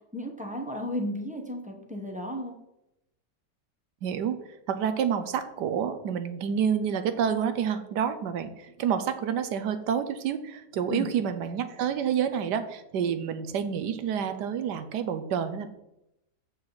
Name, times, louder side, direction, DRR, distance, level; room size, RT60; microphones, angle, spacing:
voice 1, 0.1-2.6 10.9-11.1, left 1 dB, 5° right, 1 dB, 1.0 m, -34 dB
voice 2, 4.0-4.4 4.7-15.7, right 8 dB, 90° right, 10 dB, 1.4 m, -28 dB
8.1 x 6.6 x 4.0 m, 0.85 s
omnidirectional pair, 1.8 m